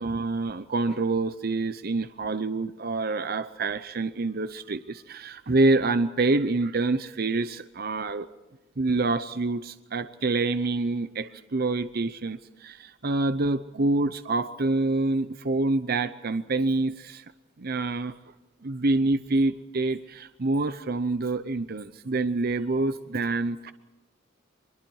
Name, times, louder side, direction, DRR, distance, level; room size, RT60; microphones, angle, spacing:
voice 1, 0.0-8.3 8.8-17.2 17.6-18.1 18.6-23.7, right 3 dB, 50° right, 12 dB, 0.7 m, -26 dB
25.0 x 22.0 x 4.8 m, 1.1 s
head